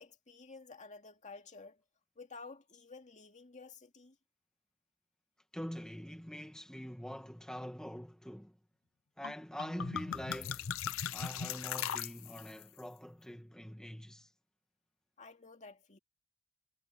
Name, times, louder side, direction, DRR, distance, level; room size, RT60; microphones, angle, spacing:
voice 1, 0.0-1.8 2.2-4.2 15.2-16.0, left 4 dB, 35° left, 2.3 m, -52 dB
voice 2, 5.5-8.6 9.2-10.7 11.1-14.3, equal, 5° left, 1.4 m, -44 dB
sound 1, 9.2-9.3 9.6-12.6, left 8 dB, 65° left, 0.6 m, -39 dB
head